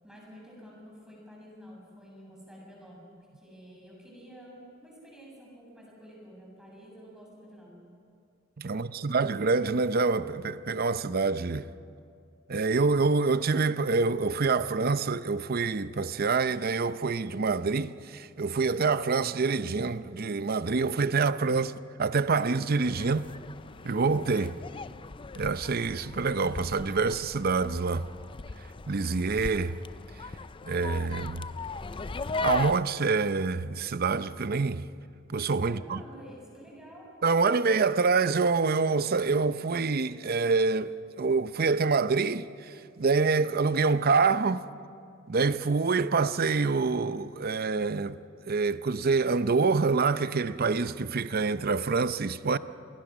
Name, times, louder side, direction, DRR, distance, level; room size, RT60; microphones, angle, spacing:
voice 1, 0.0-3.0 3.3-7.8 8.7-9.3 35.6-37.1, equal, 5° right, 7.5 m, -50 dB
voice 2, 8.6-11.7 12.5-23.3 23.8-24.6 25.4-28.1 28.9-29.8 30.6-31.5 32.4-34.9 35.3-36.0 37.2-44.7 45.3-48.2 48.4-52.6, right 4 dB, 50° right, 0.6 m, -26 dB
sound 1, 22.8-32.8, left 3 dB, 25° left, 0.5 m, -38 dB
27.5 x 22.5 x 6.2 m
head